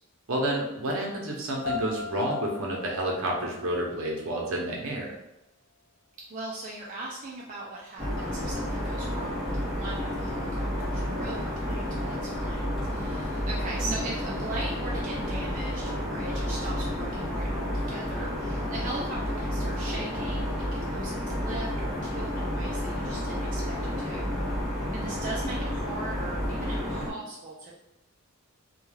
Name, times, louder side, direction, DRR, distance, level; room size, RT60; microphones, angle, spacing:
voice 1, 0.3-5.2, right 1 dB, 65° right, -1 dB, 0.7 m, -30 dB
sound 1, 1.6-4.6, left 6 dB, 65° left, 1.1 m, -38 dB
voice 2, 6.3-24.6 24.9-27.7, right 2 dB, 35° right, -4 dB, 0.4 m, -40 dB
sound 2, 8.0-27.1, equal, ahead, 0.7 m, -31 dB
2.3 x 2.3 x 3.2 m, 0.90 s
head